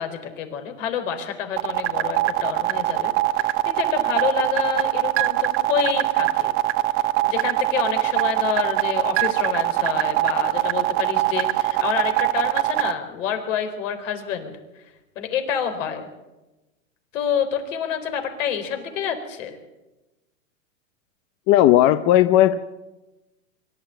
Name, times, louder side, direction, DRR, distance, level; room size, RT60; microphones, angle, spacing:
voice 1, 0.0-6.5 7.3-16.1 17.1-19.6, left 8 dB, 65° left, 6 dB, 4.2 m, -28 dB
sound 1, 1.6-12.9, right 17 dB, 30° right, 0.9 m, -21 dB
voice 2, 21.5-22.6, left 13 dB, 35° left, 12 dB, 0.7 m, -15 dB
24.0 x 12.5 x 8.9 m, 1.0 s
hypercardioid pair, 130°, 41 cm